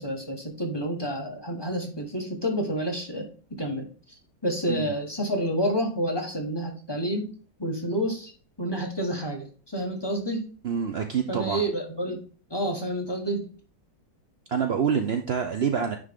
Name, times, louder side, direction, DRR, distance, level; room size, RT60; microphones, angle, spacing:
voice 1, 0.0-3.8 4.4-7.3 7.6-8.3 8.6-10.5 11.3-12.2 12.5-13.5, equal, 15° left, 1 dB, 1.1 m, -29 dB
voice 2, 10.6-11.6 14.5-16.0, right 7 dB, 80° right, 5 dB, 0.5 m, -26 dB
9.7 x 3.8 x 3.6 m, 0.40 s
omnidirectional pair, 2.0 m